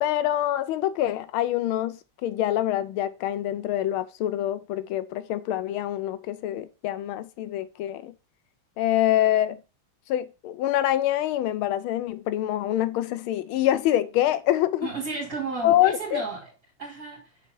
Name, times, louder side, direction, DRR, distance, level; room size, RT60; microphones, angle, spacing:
voice 1, 0.0-8.1 8.8-9.6 10.1-14.9 15.6-16.2, left 13 dB, 80° left, 1.4 m, -25 dB
voice 2, 14.8-16.5 16.8-17.2, right 4 dB, 45° right, 3.4 m, -33 dB
6.9 x 3.6 x 4.5 m
omnidirectional pair, 2.3 m